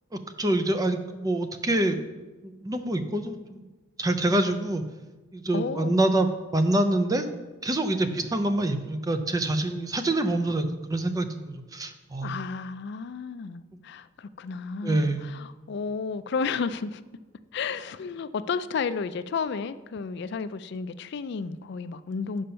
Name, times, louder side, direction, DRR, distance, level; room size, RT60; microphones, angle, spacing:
voice 1, 0.4-2.0 2.4-3.6 4.0-4.8 5.3-7.3 7.6-12.4 14.8-15.3, right 1 dB, 20° right, 7 dB, 0.5 m, -26 dB
voice 2, 5.5-6.0 8.1-8.2 12.2-17.0 17.5-22.4, left 5 dB, 55° left, 13 dB, 0.4 m, -32 dB
7.0 x 5.1 x 5.6 m, 1.2 s
head